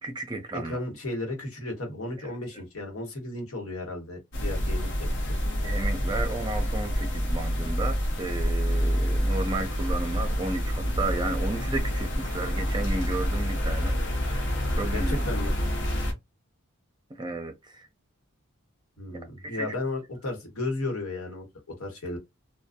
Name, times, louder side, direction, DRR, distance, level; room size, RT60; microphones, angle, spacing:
voice 1, 0.0-0.8 2.2-2.3 5.6-14.4 14.7-15.2 17.1-17.9 19.4-19.8, right 2 dB, 20° right, 0.4 m, -33 dB
voice 2, 0.5-5.4 14.9-15.5 19.0-22.2, left 2 dB, 90° left, 1.1 m, -34 dB
sound 1, 4.3-16.1, equal, 55° left, 0.7 m, -27 dB
2.5 x 2.2 x 2.5 m
head